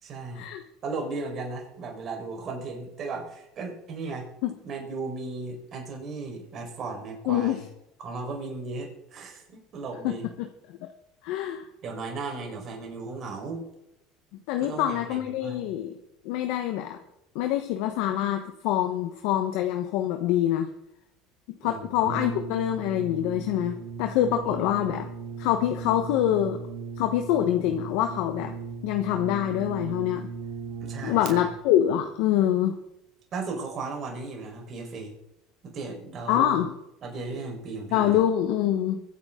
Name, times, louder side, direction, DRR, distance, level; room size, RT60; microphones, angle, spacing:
voice 1, 0.0-0.5 0.8-4.3 4.6-7.6 8.0-10.3 11.8-13.6 14.6-15.7 21.6-22.0 24.4-24.6 30.8-31.5 33.3-35.1 35.6-36.7 37.0-38.2, right 3 dB, 45° right, 1 dB, 4.5 m, -36 dB
voice 2, 7.3-7.6 10.0-10.5 11.2-11.6 14.5-15.9 16.2-17.0 17.3-20.7 21.6-25.1 25.4-26.6 27.0-28.5 28.8-30.3 31.0-32.8 36.3-36.7 37.9-39.0, left 11 dB, 75° left, 5 dB, 1.1 m, -25 dB
Brass instrument, 22.0-31.3, right 5 dB, 70° right, 2.6 m, -37 dB
22.5 x 8.7 x 3.8 m, 0.85 s
supercardioid pair, 100°, 0 cm